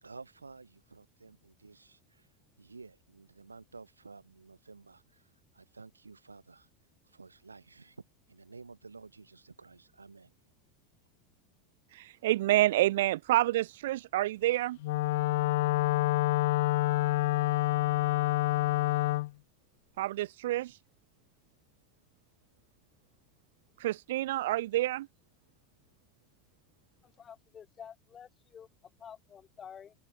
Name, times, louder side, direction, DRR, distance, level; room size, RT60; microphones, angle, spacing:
voice 1, 0.0-2.3 2.6-6.7 7.0-10.3, right 4 dB, 80° right, 2.4 m, -52 dB
voice 2, 11.9-14.8 20.0-20.8 23.8-25.1, right 15 dB, 60° right, 0.7 m, -28 dB
Wind instrument woodwind instrument, 14.8-19.3, left 18 dB, 60° left, 0.5 m, -27 dB
voice 3, 27.0-28.7 29.0-29.9, left 8 dB, 25° left, 2.5 m, -50 dB
figure-of-eight pair, 80°, 0 cm